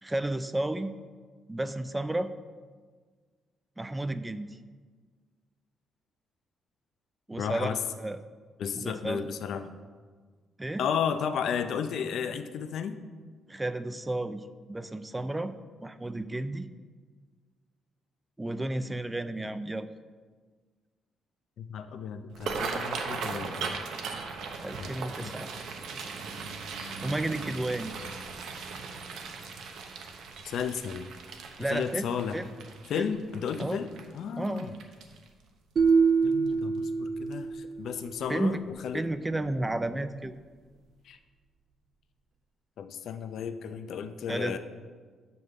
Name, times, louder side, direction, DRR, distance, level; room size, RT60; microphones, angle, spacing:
voice 1, 0.0-0.9 1.5-2.3 3.8-4.6 7.3-8.2 8.7-9.2 10.6-10.8 13.5-15.5 15.8-16.7 18.4-19.9 24.6-25.5 27.0-27.9 31.6-32.5 32.9-33.1 33.6-33.8 34.4-34.7 38.3-38.6 38.9-40.3 44.3-44.6, right 1 dB, 15° right, 12 dB, 0.4 m, -32 dB
voice 2, 7.4-7.8 8.6-9.7 10.8-13.0 21.6-23.8 24.8-24.9 25.2-25.3 30.4-31.1 31.6-32.4 32.9-34.7 36.2-38.6 38.8-39.0 41.0-41.2 42.8-44.6, left 7 dB, 70° left, 9 dB, 0.5 m, -33 dB
sound 1, 22.3-35.4 35.9-36.2 36.5-36.9 37.3-37.5 38.7-38.9 39.2-39.4 39.8-39.9, right 5 dB, 75° right, 0.9 m, -38 dB
sound 2, 35.8-37.9, right 5 dB, 50° right, 0.8 m, -25 dB
6.3 x 5.4 x 6.6 m, 1.5 s
cardioid pair, 90°, 0 cm